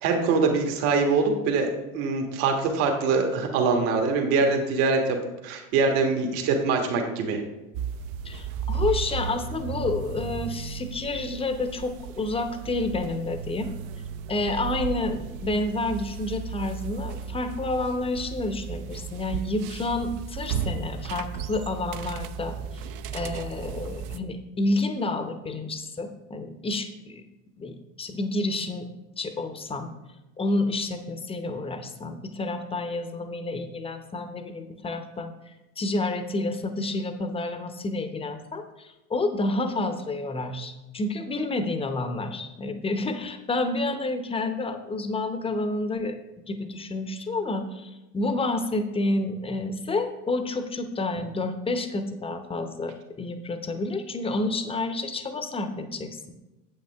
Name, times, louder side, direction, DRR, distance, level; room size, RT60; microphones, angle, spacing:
voice 1, 0.0-5.2 5.4-7.4, right 4 dB, 60° right, 3 dB, 1.5 m, -23 dB
sound 1, 7.7-24.2, right 7 dB, 45° right, 0.5 m, -35 dB
voice 2, 8.2-13.7 14.3-22.8 23.1-27.2 27.6-28.9 29.2-29.9 30.4-46.2 46.5-56.1, left 2 dB, 10° left, 8 dB, 0.7 m, -29 dB
8.7 x 7.5 x 3.4 m, 1.0 s
hypercardioid pair, 80°, 47 cm